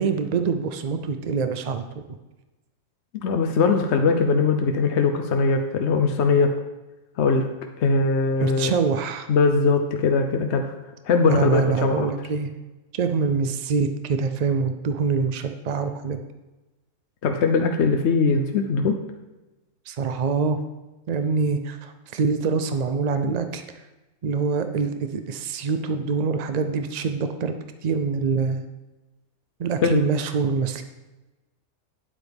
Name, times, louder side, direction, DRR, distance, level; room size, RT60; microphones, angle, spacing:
voice 1, 0.0-1.8 8.4-9.3 11.3-12.5 12.9-16.2 19.9-20.6 21.1-23.6 24.2-27.6 27.8-28.6 29.6-30.8, right 5 dB, 70° right, 8 dB, 0.3 m, -25 dB
voice 2, 3.1-6.5 7.2-7.5 7.8-8.7 9.3-10.7 11.1-12.1 17.2-19.0 29.9-30.0, left 4 dB, 60° left, 5 dB, 0.9 m, -21 dB
9.2 x 7.9 x 3.5 m, 1.1 s
omnidirectional pair, 1.4 m